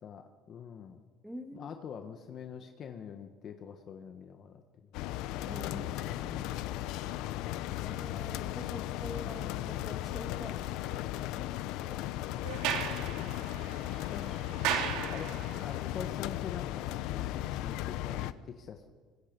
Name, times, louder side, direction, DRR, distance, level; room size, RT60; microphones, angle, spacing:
voice 1, 0.0-1.0 1.5-4.9 5.7-7.0 11.4-11.6 12.9-13.5 14.0-18.9, left 7 dB, 45° left, 6 dB, 1.4 m, -46 dB
voice 2, 1.2-1.8 5.4-6.2 7.8-11.6 11.8-12.3 17.2-17.3, equal, ahead, 4 dB, 2.7 m, -46 dB
sound 1, 4.9-18.3, left 14 dB, 75° left, 0.8 m, -36 dB
Sliding door, 12.4-15.7, right 8 dB, 80° right, 3.0 m, -36 dB
25.0 x 20.5 x 5.4 m, 1.5 s
cardioid pair, 125°, 0 cm